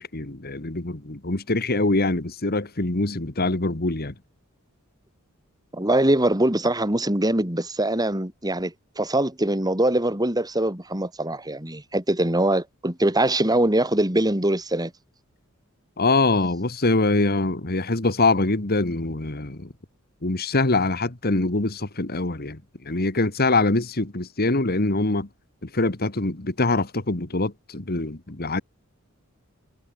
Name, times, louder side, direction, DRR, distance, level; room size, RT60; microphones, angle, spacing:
voice 1, 0.0-4.1 16.0-19.7 20.2-25.3 25.6-28.6, left 2 dB, 45° left, 1.9 m, -24 dB
voice 2, 5.7-14.9, right 1 dB, 20° right, 3.8 m, -23 dB
head